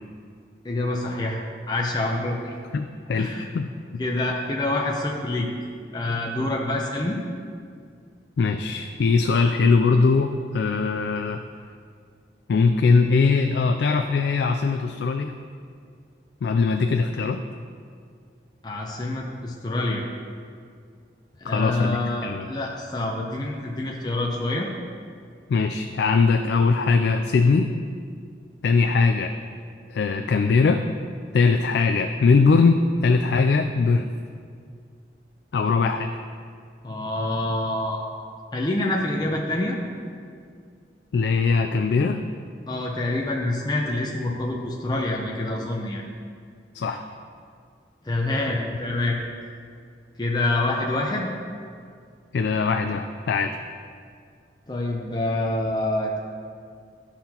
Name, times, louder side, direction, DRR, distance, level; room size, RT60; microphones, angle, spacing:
voice 1, 0.6-1.4 1.7-2.5 3.1-3.5 4.0-5.5 5.9-7.2 18.6-20.0 21.4-24.7 36.8-38.1 38.5-39.8 42.7-46.0 48.0-49.2 50.2-51.3 54.7-56.2, left 2 dB, 25° left, -1 dB, 0.5 m, -26 dB
voice 2, 2.7-4.0 8.4-11.4 12.5-15.3 16.4-17.4 21.4-22.5 25.5-27.7 28.6-29.3 29.9-30.8 31.3-34.1 35.5-36.1 41.1-42.2 46.7-47.0 52.3-53.6, left 4 dB, 75° left, 6 dB, 0.3 m, -21 dB
12.0 x 5.7 x 2.9 m, 2.2 s
head